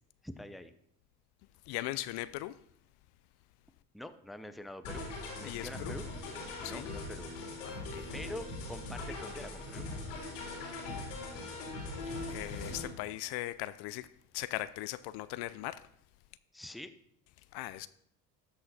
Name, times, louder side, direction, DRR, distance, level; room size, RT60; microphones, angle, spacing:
voice 1, 0.2-0.7 3.9-5.0 5.3-6.1 6.6-7.3 8.1-9.8 16.5-16.9, left 1 dB, ahead, 0.6 m, -45 dB
voice 2, 1.7-2.5 5.4-5.9 6.6-6.9 7.6-8.1 12.3-14.1 14.3-15.8 17.5-17.9, left 16 dB, 70° left, 0.6 m, -39 dB
sound 1, 4.8-12.9, left 2 dB, 85° left, 3.6 m, -41 dB
12.5 x 5.6 x 4.1 m
supercardioid pair, 80°, 41 cm